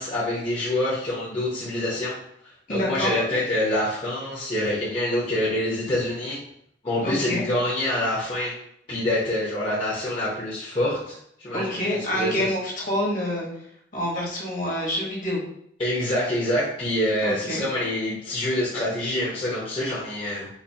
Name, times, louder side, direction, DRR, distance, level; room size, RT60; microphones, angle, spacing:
voice 1, 0.0-2.2 2.4-6.4 6.8-8.6 8.9-12.5 15.8-20.5, left 1 dB, 30° left, -8 dB, 0.8 m, -26 dB
voice 2, 2.7-3.1 7.0-7.4 11.5-13.5 13.9-15.4 17.2-17.6, left 1 dB, 45° left, -3 dB, 1.1 m, -27 dB
4.1 x 2.6 x 2.7 m, 0.71 s
head